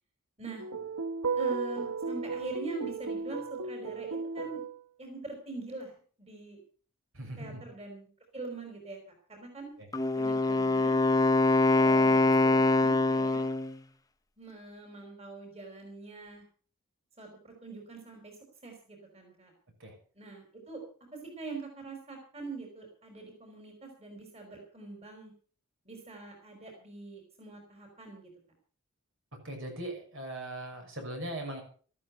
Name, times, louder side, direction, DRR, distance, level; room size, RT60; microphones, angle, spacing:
sound 1, 0.6-4.8, right 4 dB, 85° right, 1.2 m, -34 dB
voice 1, 1.4-4.6 5.0-5.9 6.2-6.6 7.4-8.1 8.3-9.0 9.3-9.7 10.1-11.0 11.7-13.4 14.4-16.4 17.2-18.3 18.6-19.5 20.1-20.8 21.1-25.3 25.8-28.3, right 3 dB, 30° right, 2 dB, 4.9 m, -43 dB
voice 2, 7.1-7.6 9.8-9.9 19.8-19.9 29.4-31.6, right 1 dB, 60° right, 3 dB, 6.2 m, -39 dB
Wind instrument woodwind instrument, 9.9-13.8, left 2 dB, 15° left, 0.9 m, -24 dB
14.0 x 13.5 x 5.7 m, 0.43 s
head